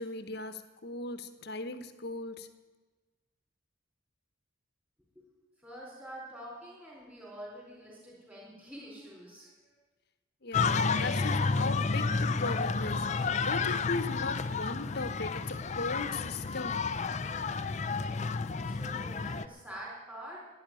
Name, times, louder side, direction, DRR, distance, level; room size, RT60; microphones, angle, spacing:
voice 1, 0.0-2.5 10.4-13.1 13.4-16.9, left 3 dB, 50° left, 11 dB, 1.0 m, -38 dB
voice 2, 5.6-9.5 18.3-20.4, right 1 dB, 5° right, -4 dB, 4.1 m, -46 dB
sound 1, 10.5-19.5, left 4 dB, 35° left, 0.5 m, -31 dB
12.0 x 10.5 x 9.1 m, 1.2 s
head